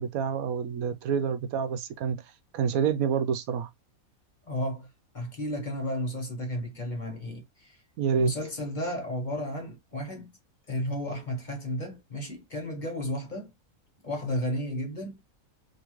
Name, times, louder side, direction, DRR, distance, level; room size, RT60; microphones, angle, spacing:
voice 1, 0.0-2.2 2.5-3.7 8.0-8.3, right 7 dB, 80° right, 1.1 m, -27 dB
voice 2, 4.5-4.9 5.1-7.8 8.1-10.3 10.7-13.5 14.0-15.2, equal, 35° left, 1.1 m, -33 dB
3.7 x 2.9 x 3.0 m
omnidirectional pair, 1.5 m